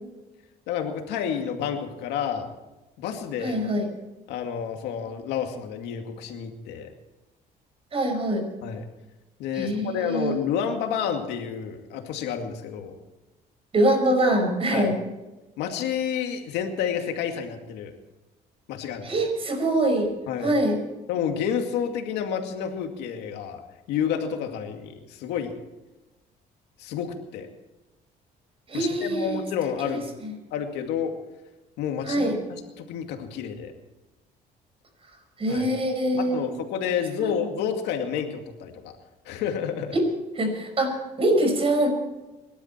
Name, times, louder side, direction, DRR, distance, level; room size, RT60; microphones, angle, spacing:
voice 1, 0.7-2.5 3.0-3.6 4.3-6.9 8.6-8.9 9.4-13.0 14.7-14.9 15.6-17.9 18.7-19.1 20.3-20.5 21.1-23.6 23.9-25.5 26.8-27.5 28.7-30.1 30.5-31.1 31.8-32.3 32.8-33.7 35.5-35.7 36.2-38.9 39.3-39.9, left 8 dB, 90° left, 4 dB, 2.3 m, -29 dB
voice 2, 3.4-3.9 7.9-8.4 9.5-10.4 13.7-15.0 19.0-20.1 20.4-20.8 28.7-29.4 29.9-30.3 32.0-32.3 35.4-36.5 37.2-37.3 39.9-40.0 40.4-41.9, right 1 dB, 35° right, 5 dB, 5.5 m, -24 dB
25.0 x 12.0 x 4.5 m, 1.1 s
cardioid pair, 110°, 17 cm